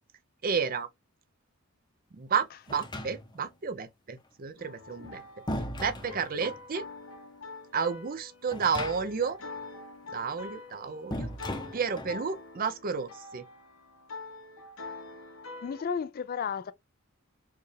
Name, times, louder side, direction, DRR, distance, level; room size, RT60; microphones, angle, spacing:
voice 1, 0.4-0.9 2.1-5.2 5.7-6.9 7.7-9.4 10.1-11.3 11.7-13.5, right 6 dB, 45° right, 0.5 m, -31 dB
sound 1, 2.7-3.5 4.8-6.6 8.5-9.3 9.6-9.7 11.1-12.2, left 1 dB, 20° left, 0.7 m, -38 dB
sound 2, 4.6-15.8, left 3 dB, 75° left, 0.9 m, -45 dB
voice 2, 15.6-16.7, left 6 dB, 45° left, 0.4 m, -32 dB
4.5 x 2.4 x 3.2 m
head